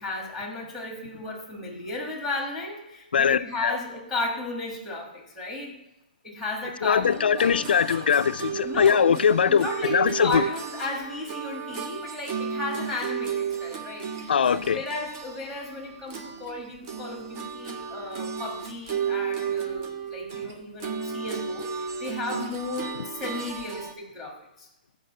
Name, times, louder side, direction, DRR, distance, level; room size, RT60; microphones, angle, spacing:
voice 1, 0.0-5.8 6.2-7.6 8.6-24.7, left 2 dB, ahead, 1.5 m, -34 dB
voice 2, 3.1-3.8 6.8-10.4 14.3-14.8, left 7 dB, 90° left, 0.4 m, -21 dB
sound 1, 7.0-16.6 16.9-23.9, right 7 dB, 25° right, 0.5 m, -34 dB
6.5 x 5.0 x 6.6 m
hypercardioid pair, 175°, 5 cm